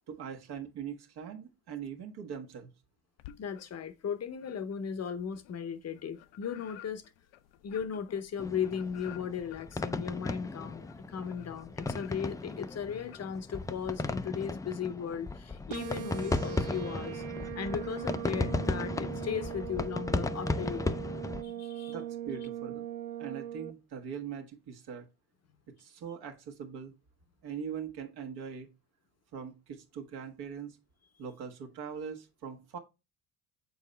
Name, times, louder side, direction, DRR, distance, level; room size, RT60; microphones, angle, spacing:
voice 1, 0.1-2.7 21.9-22.9 23.2-25.1 25.7-26.9 27.4-28.7 29.3-30.8 31.2-32.8, right 7 dB, 65° right, 1.4 m, -41 dB
sound 1, 3.2-4.0 4.4-14.2, left 13 dB, 85° left, 0.6 m, -55 dB
voice 2, 3.4-7.0 7.6-17.2 17.6-21.0 21.4-21.9, left 7 dB, 40° left, 0.7 m, -37 dB
sound 2, 8.4-21.4, left 3 dB, 10° left, 0.3 m, -36 dB
sound 3, 15.7-23.7, right 11 dB, 80° right, 0.8 m, -40 dB
7.0 x 4.1 x 3.3 m
supercardioid pair, 85°, 42 cm